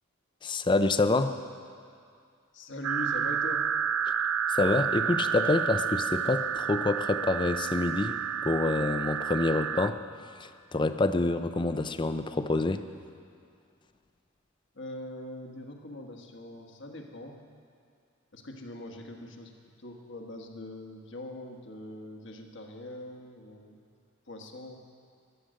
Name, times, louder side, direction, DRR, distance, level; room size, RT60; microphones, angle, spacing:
voice 1, 0.4-1.3 4.5-10.0 10.4-12.9, left 2 dB, 25° left, 10 dB, 0.5 m, -27 dB
voice 2, 2.5-3.7 14.7-17.5 18.3-19.5 19.8-23.8 24.3-24.8, left 1 dB, 60° left, 3 dB, 1.4 m, -42 dB
sound 1, 2.8-9.9, right 8 dB, 90° right, 0.5 m, -30 dB
15.5 x 11.5 x 6.4 m, 2.3 s
head